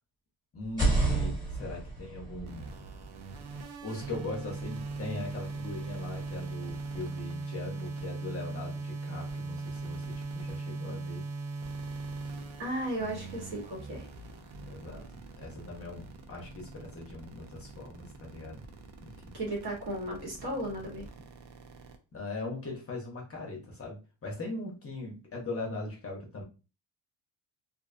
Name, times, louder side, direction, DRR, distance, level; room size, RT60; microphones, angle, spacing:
voice 1, 0.5-2.6 3.8-11.2 14.6-18.6 19.0-19.3 22.1-26.4, left 2 dB, 30° left, -1 dB, 0.7 m, -40 dB
sound 1, 0.6-4.5, right 2 dB, 10° right, 1.3 m, -32 dB
sound 2, 2.5-22.0, right 3 dB, 70° right, 0.7 m, -40 dB
voice 2, 12.6-14.0 19.3-21.1, right 1 dB, 50° right, -1 dB, 1.2 m, -35 dB
2.5 x 2.2 x 2.5 m, 0.32 s
cardioid pair, 130°, 50 cm